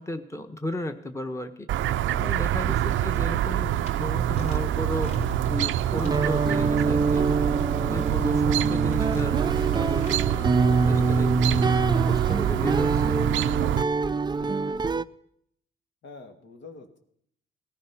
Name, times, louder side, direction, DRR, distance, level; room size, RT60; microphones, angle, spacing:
voice 1, 0.0-1.5 2.2-5.1 5.5-7.5 7.8-9.3 9.7-10.5 10.9-13.4, left 1 dB, 15° left, 7 dB, 1.3 m, -35 dB
Chirp tweet, 1.7-13.8, right 11 dB, 75° right, 0.5 m, -26 dB
voice 2, 2.1-2.7 14.4-14.9 16.0-17.0, left 3 dB, 70° left, 4 dB, 2.3 m, -46 dB
sound 1, 3.8-3.9 4.3-6.2 6.8-7.3 7.8-8.4 8.9-10.2, left 2 dB, 35° left, 3.3 m, -40 dB
sound 2, 5.9-15.0, right 4 dB, 20° right, 0.5 m, -25 dB
17.5 x 13.5 x 6.0 m, 0.71 s
cardioid pair, 90°, 20 cm